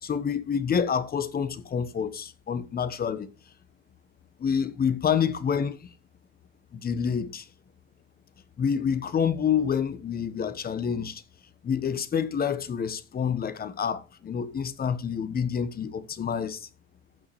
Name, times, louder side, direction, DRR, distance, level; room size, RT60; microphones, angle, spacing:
voice 1, 0.0-3.3 4.4-5.9 6.7-7.5 8.6-11.2 11.6-16.7, left 7 dB, 25° left, 1.1 m, -28 dB
15.0 x 6.3 x 3.1 m
hypercardioid pair, 85°, 38 cm